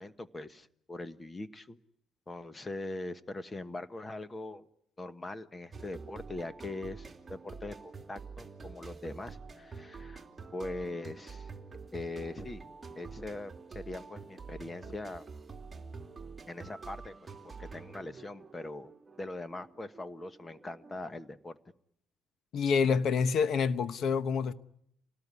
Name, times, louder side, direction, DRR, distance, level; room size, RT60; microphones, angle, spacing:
voice 1, 0.0-1.8 2.3-4.7 5.0-10.2 10.5-11.5 11.9-12.6 12.9-15.3 16.5-18.9 19.2-21.6, left 2 dB, 20° left, 1.1 m, -41 dB
sound 1, 5.7-21.0, right 4 dB, 20° right, 2.9 m, -47 dB
voice 2, 22.5-24.5, left 6 dB, 60° left, 1.1 m, -27 dB
27.0 x 19.0 x 9.7 m
cardioid pair, 125°, 0 cm